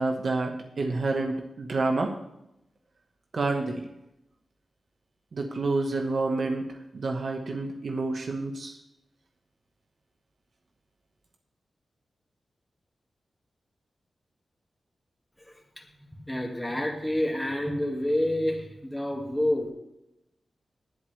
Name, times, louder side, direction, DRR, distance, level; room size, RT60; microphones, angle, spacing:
voice 1, 0.0-2.1 3.3-3.8 5.3-6.7 6.9-8.8, right 3 dB, 60° right, 3 dB, 1.5 m, -28 dB
voice 2, 15.4-19.7, left 1 dB, 10° left, 1 dB, 2.2 m, -29 dB
19.0 x 7.9 x 3.4 m, 0.85 s
wide cardioid pair, 85°, 0 cm